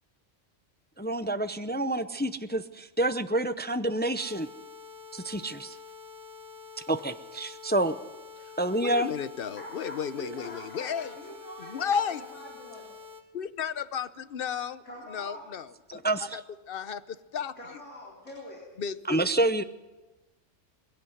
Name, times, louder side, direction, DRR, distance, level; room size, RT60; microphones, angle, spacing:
voice 1, 1.0-4.5 5.1-5.8 6.9-8.0 8.6-9.1 15.9-16.4 19.1-19.6, right 1 dB, 15° left, 10 dB, 0.4 m, -28 dB
sound 1, 4.2-13.2, left 5 dB, 45° right, 2.1 m, -47 dB
voice 2, 8.8-11.1 11.6-12.2 13.3-16.0 16.3-16.4 16.7-17.6 18.8-19.2, left 7 dB, 55° left, 14 dB, 1.0 m, -33 dB
voice 3, 9.6-13.0 14.9-15.5 17.6-18.6, left 1 dB, 75° left, -3 dB, 4.0 m, -44 dB
21.5 x 16.5 x 7.9 m, 1.1 s
omnidirectional pair, 1.3 m